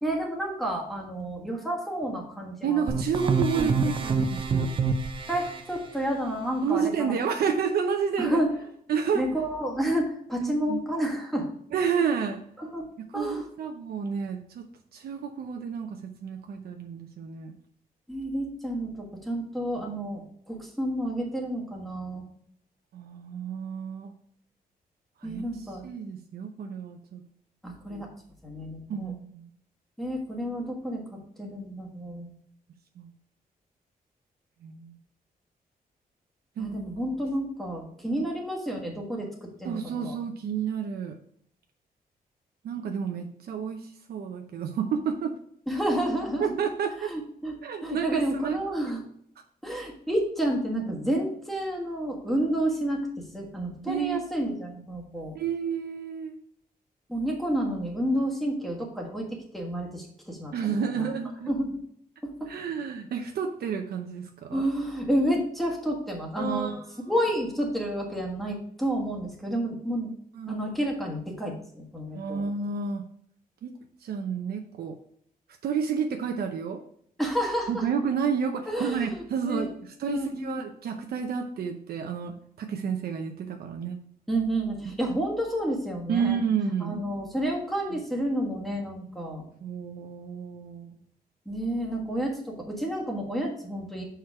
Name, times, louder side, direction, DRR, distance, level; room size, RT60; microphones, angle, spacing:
voice 1, 0.0-2.9 3.6-3.8 5.3-7.1 8.2-8.5 9.1-11.5 12.6-12.9 13.1-13.4 18.1-22.2 25.2-25.9 27.6-28.1 28.4-29.1 30.0-31.0 31.4-32.3 36.6-40.2 45.7-46.5 47.1-47.5 47.8-49.0 49.6-53.0 53.3-55.4 57.1-59.3 59.5-61.1 61.5-61.8 62.2-62.5 64.5-66.7 67.1-70.1 70.5-72.4 77.2-77.9 78.7-79.7 80.1-80.6 84.3-86.4 86.8-89.5 91.4-94.0, right 1 dB, ahead, -1 dB, 1.5 m, -30 dB
voice 2, 2.6-4.7 6.6-8.4 8.9-9.2 10.4-10.8 11.7-12.4 13.1-14.6 14.9-17.6 22.9-24.1 25.2-27.2 27.9-28.0 28.9-29.5 33.0-33.1 34.6-35.0 36.6-36.9 39.6-41.2 42.6-45.3 46.4-47.1 47.6-48.6 53.9-54.2 55.3-56.3 60.5-61.5 62.5-64.7 66.4-66.8 70.3-70.6 72.1-73.0 73.6-73.7 74.0-75.0 75.6-76.8 77.7-84.0 85.0-85.2 86.1-87.0 89.6-91.0, right 6 dB, 80° right, 4 dB, 0.7 m, -30 dB
sound 1, 2.9-5.6, right 4 dB, 35° right, 0.5 m, -26 dB
6.6 x 4.6 x 4.6 m, 0.66 s
wide cardioid pair, 180°, 16 cm